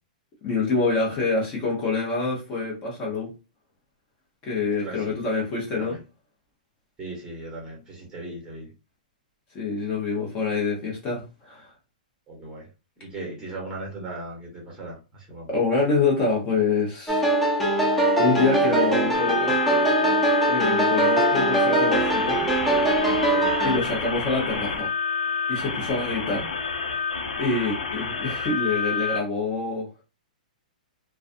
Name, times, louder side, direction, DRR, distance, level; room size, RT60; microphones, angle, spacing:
voice 1, 0.4-3.3 4.4-6.0 9.5-11.7 15.5-17.3 17.6-17.8 18.2-19.6 20.5-22.4 23.6-24.9 25.5-26.5 26.9-27.1 27.4-29.9, left 3 dB, 25° left, -3 dB, 0.9 m, -26 dB
voice 2, 4.8-5.3 5.8-6.0 7.0-8.7 12.3-12.7 13.0-15.5 23.3-23.8, right 2 dB, 15° right, -2 dB, 1.2 m, -37 dB
sound 1, 17.1-23.8, right 1 dB, 5° left, 0.5 m, -22 dB
sound 2, 19.1-29.2, left 5 dB, 75° left, 0.6 m, -28 dB
2.4 x 2.3 x 2.5 m, 0.31 s
hypercardioid pair, 150°, 5 cm